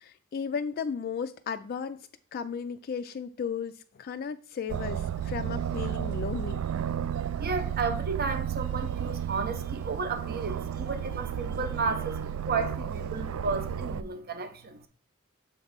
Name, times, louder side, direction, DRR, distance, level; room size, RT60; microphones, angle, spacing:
voice 1, 0.0-2.0 2.3-6.6, left 6 dB, 45° left, 0.3 m, -35 dB
Aircraft, 4.7-14.0, right 9 dB, 80° right, 0.3 m, -33 dB
voice 2, 7.4-14.8, right 4 dB, 45° right, 0.7 m, -33 dB
7.1 x 3.1 x 5.1 m
head